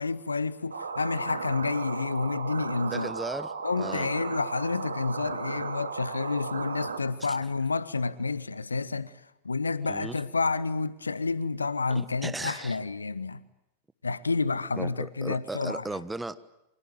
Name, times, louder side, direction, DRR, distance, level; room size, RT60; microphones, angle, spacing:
voice 1, 0.0-3.1 3.6-13.4 14.0-15.9, left 4 dB, 75° left, 1.1 m, -29 dB
sound 1, 0.7-7.0, right 5 dB, 75° right, 2.2 m, -35 dB
voice 2, 2.8-4.1 7.3-7.4 9.8-10.2 11.9-12.8 14.8-16.5, right 2 dB, 5° right, 1.2 m, -37 dB
29.0 x 25.5 x 7.8 m
figure-of-eight pair, 90°, 0 cm